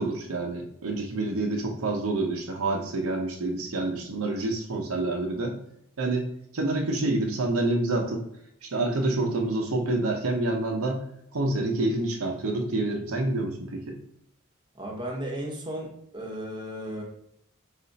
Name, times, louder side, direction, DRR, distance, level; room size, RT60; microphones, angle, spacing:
voice 1, 0.0-5.6 6.0-6.3 6.5-8.2 8.6-11.0 11.3-14.0, right 2 dB, 70° right, 2 dB, 0.7 m, -27 dB
voice 2, 14.7-17.0, right 1 dB, 20° right, -1 dB, 1.0 m, -35 dB
4.2 x 2.5 x 4.0 m, 0.72 s
head